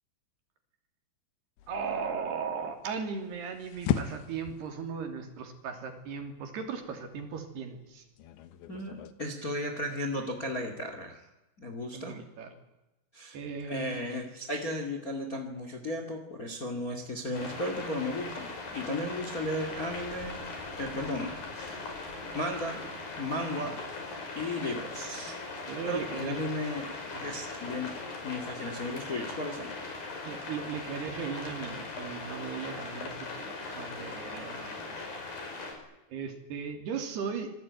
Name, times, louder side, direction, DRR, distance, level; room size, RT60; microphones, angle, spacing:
sound 1, 1.6-9.1, left 10 dB, 90° left, 3.6 m, -39 dB
voice 1, 1.7-8.0 11.9-12.5 13.3-14.1 23.6-23.8 25.7-26.4 27.1-27.3 30.2-35.0 36.1-37.5, right 6 dB, 70° right, 5 dB, 4.8 m, -37 dB
voice 2, 8.7-11.2 11.6-12.2 13.1-13.4 13.7-20.5 20.8-21.9 22.3-22.8 23.2-23.8 24.3-25.4 25.8-27.9 28.2-29.8, left 1 dB, 30° left, 6 dB, 1.9 m, -35 dB
sound 2, 17.3-35.7, left 3 dB, 55° left, 6.6 m, -40 dB
26.5 x 19.0 x 9.6 m, 0.98 s
omnidirectional pair, 5.0 m